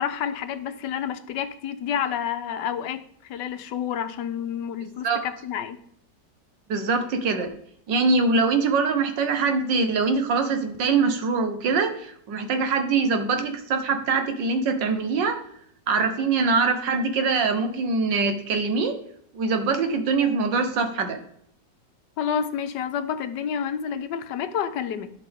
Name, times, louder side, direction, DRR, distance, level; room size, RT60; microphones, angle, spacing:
voice 1, 0.0-5.8 22.2-25.1, left 8 dB, 75° left, 10 dB, 1.3 m, -29 dB
voice 2, 6.7-7.5 7.9-15.4 15.9-19.0 19.3-21.2, right 4 dB, 80° right, 7 dB, 1.8 m, -23 dB
11.5 x 5.9 x 3.5 m, 0.68 s
omnidirectional pair, 1.9 m